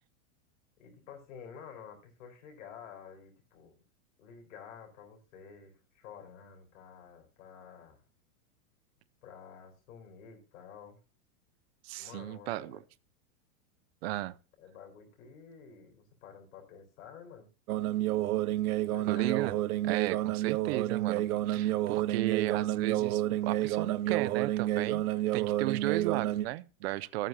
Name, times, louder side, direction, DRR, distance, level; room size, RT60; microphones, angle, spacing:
voice 1, 0.8-3.7 4.2-8.0 9.2-11.0 12.0-12.8 14.6-17.5 18.8-19.6, left 7 dB, 70° left, 4.5 m, -50 dB
voice 2, 11.8-12.8 14.0-14.3 19.1-19.6 19.8-25.1 25.3-27.3, right 17 dB, 50° right, 0.5 m, -35 dB
sound 1, 17.7-26.5, right 14 dB, 90° right, 0.7 m, -30 dB
13.0 x 9.1 x 2.8 m
supercardioid pair, 150°, 42 cm